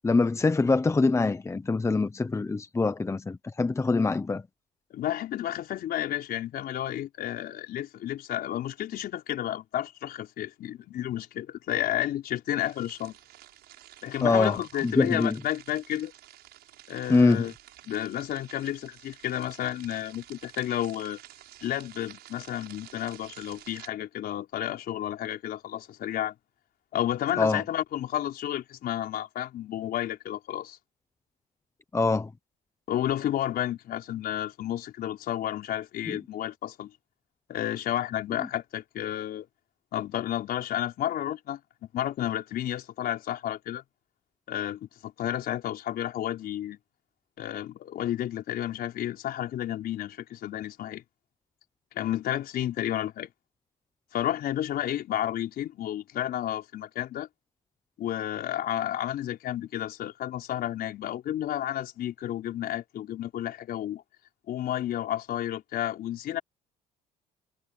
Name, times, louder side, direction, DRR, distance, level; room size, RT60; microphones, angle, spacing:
voice 1, 0.0-4.4 14.2-14.6 14.8-15.4 17.1-17.4 27.4-27.6 31.9-32.3 36.1-36.2, left 3 dB, 15° left, 1.0 m, -24 dB
voice 2, 4.9-13.2 14.0-16.1 16.9-17.5 17.9-21.2 21.6-26.4 26.9-30.8 32.9-36.9 37.5-39.5 39.9-41.6 41.9-43.8 44.5-46.8 47.4-51.0 51.9-53.3 54.1-57.3 58.0-64.0 64.5-66.4, left 12 dB, 65° left, 4.6 m, -31 dB
sound 1, 12.6-23.9, right 14 dB, 75° right, 8.0 m, -51 dB
cardioid pair, 110°, 17 cm